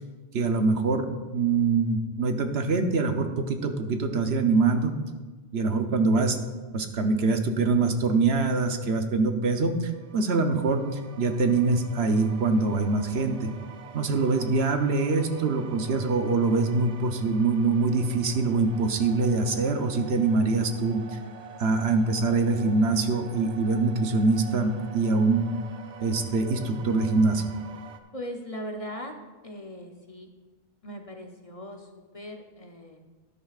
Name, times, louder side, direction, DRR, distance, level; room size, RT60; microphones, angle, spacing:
voice 1, 0.3-1.1 1.3-5.0 5.5-6.4 6.7-10.8 11.2-13.5 13.9-21.2 21.6-25.4 26.0-27.4, right 3 dB, 70° right, 6 dB, 1.1 m, -24 dB
sound 1, 9.8-28.0, right 5 dB, 90° right, 1.1 m, -47 dB
voice 2, 28.1-29.1 29.4-30.3 30.8-33.0, equal, 35° left, 3 dB, 0.8 m, -39 dB
12.5 x 11.0 x 2.4 m, 1.3 s
omnidirectional pair, 1.1 m